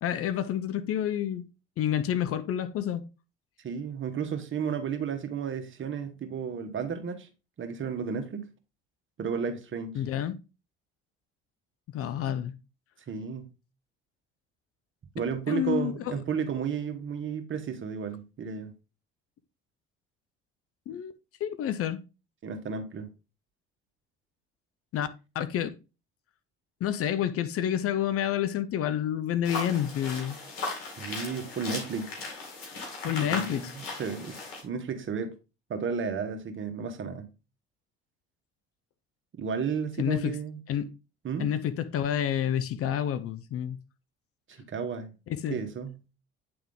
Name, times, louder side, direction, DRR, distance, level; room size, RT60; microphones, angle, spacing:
voice 1, 0.0-1.5 1.8-3.1 9.9-10.4 11.9-12.5 15.5-16.2 20.9-21.2 21.4-22.0 24.9-25.1 25.3-25.8 26.8-30.4 33.0-33.7 40.0-40.4 40.7-40.9 41.4-43.8 45.3-45.6, left 10 dB, 50° left, 0.6 m, -29 dB
voice 2, 3.6-7.3 7.6-8.4 9.2-9.9 13.1-13.5 15.1-18.7 22.4-23.1 31.0-32.1 33.0-35.3 35.7-37.3 39.4-40.6 41.2-41.5 44.7-45.1 45.5-46.0, right 6 dB, 40° right, 1.4 m, -33 dB
sound 1, 29.4-34.6, left 3 dB, 80° left, 2.2 m, -37 dB
8.7 x 3.7 x 3.6 m
hypercardioid pair, 65°, 30 cm